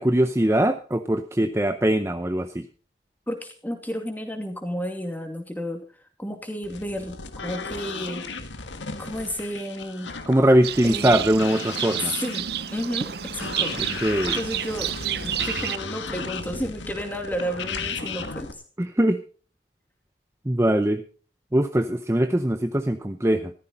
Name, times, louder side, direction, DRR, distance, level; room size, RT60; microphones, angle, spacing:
voice 1, 0.0-2.7 10.3-12.1 14.0-14.4 18.8-19.2 20.5-21.0 21.5-23.5, right 1 dB, 15° right, 8 dB, 0.6 m, -21 dB
voice 2, 3.3-5.8 6.2-7.2 7.4-8.3 9.0-10.1 10.8-11.2 12.0-14.9 15.2-18.6, equal, 10° left, 4 dB, 2.5 m, -32 dB
sound 1, 6.6-18.5, left 4 dB, 80° left, 1.7 m, -35 dB
Livestock farm animals working animals, 10.6-15.8, right 10 dB, 60° right, 0.7 m, -30 dB
14.5 x 14.0 x 4.2 m, 0.39 s
head